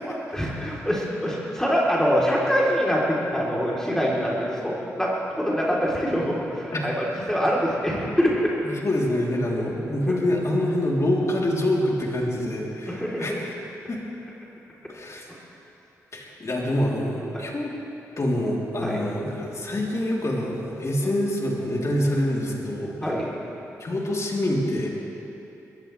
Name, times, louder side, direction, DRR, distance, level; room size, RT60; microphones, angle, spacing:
voice 1, 0.0-8.5 10.1-10.2 12.9-13.4 17.3-17.5 18.8-19.0 23.0-23.3, equal, 5° left, -5 dB, 3.8 m, -24 dB
voice 2, 8.6-13.5 13.9-14.0 14.9-15.2 16.1-17.7 18.2-23.1 23.8-24.9, left 1 dB, 45° left, -3 dB, 3.7 m, -26 dB
21.0 x 15.5 x 3.5 m, 2.9 s
supercardioid pair, 40°, 7 cm